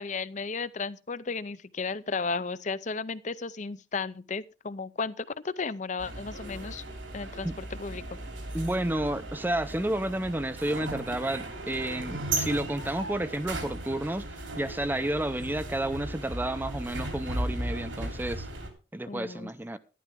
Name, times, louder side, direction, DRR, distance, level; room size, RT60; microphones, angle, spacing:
voice 1, 0.0-6.8 7.1-8.2 19.1-19.5, left 4 dB, 40° left, 0.6 m, -34 dB
sound 1, 6.0-18.7, right 2 dB, 85° right, 3.1 m, -36 dB
voice 2, 8.5-14.3 14.6-18.5 18.9-19.8, right 1 dB, 10° right, 0.5 m, -31 dB
12.0 x 11.5 x 3.6 m
head